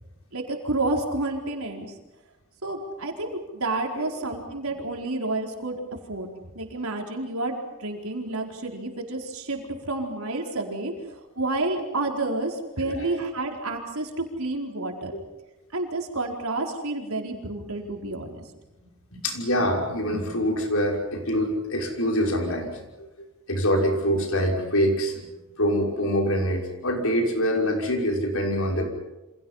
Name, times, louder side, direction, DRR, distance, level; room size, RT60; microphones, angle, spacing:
voice 1, 0.3-1.9 2.6-5.8 6.1-6.3 6.5-10.9 11.4-15.1 15.7-18.4, right 2 dB, 75° right, 2 dB, 4.5 m, -30 dB
voice 2, 12.8-13.1 19.2-23.1 23.5-25.2 25.6-28.8, equal, 70° left, 1 dB, 5.8 m, -25 dB
29.0 x 26.5 x 5.7 m, 1.1 s
head